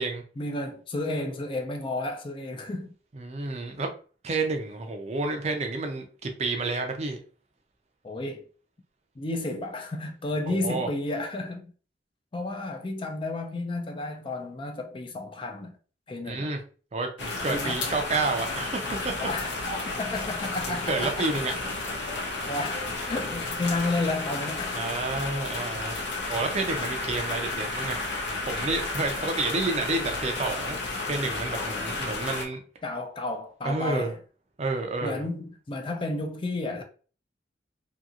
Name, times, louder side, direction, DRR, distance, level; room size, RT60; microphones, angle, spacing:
voice 1, 0.4-2.9 8.0-8.5 9.2-11.7 12.3-15.7 16.1-16.5 17.5-17.8 19.2-21.3 22.5-24.8 31.5-31.8 32.8-34.2 35.0-36.8, left 2 dB, 30° left, 0.4 m, -32 dB
voice 2, 3.1-3.9 4.2-7.2 10.5-10.9 16.2-16.6 16.9-19.1 20.7-21.5 24.7-25.9 26.3-30.8 31.1-32.6 33.6-34.1 34.6-35.2, right 3 dB, 35° right, 0.5 m, -30 dB
sound 1, 17.2-32.5, left 2 dB, 70° left, 0.7 m, -32 dB
2.8 x 2.7 x 2.4 m
head